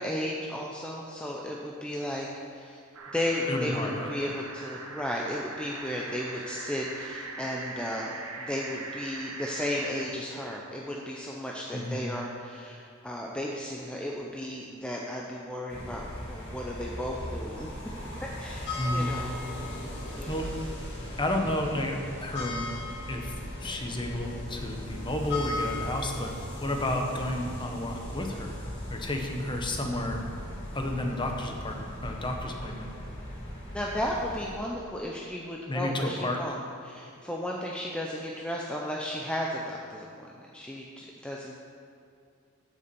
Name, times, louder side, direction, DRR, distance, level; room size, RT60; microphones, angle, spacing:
voice 1, 0.0-2.8 3.1-17.7 18.4-19.3 20.1-20.3 33.7-41.5, left 1 dB, 5° left, -2 dB, 0.6 m, -34 dB
sound 1, 2.9-10.2, right 3 dB, 70° right, 1.2 m, -41 dB
voice 2, 3.5-4.1 11.7-12.0 18.8-19.1 20.3-20.5 21.2-22.6 23.1-23.3 23.6-28.6 28.9-30.2 30.7-32.9 35.7-36.4, left 1 dB, 20° left, 2 dB, 1.0 m, -31 dB
sound 2, 15.7-34.5, left 1 dB, 55° left, 2.4 m, -38 dB
8.2 x 6.9 x 6.9 m, 2.4 s
head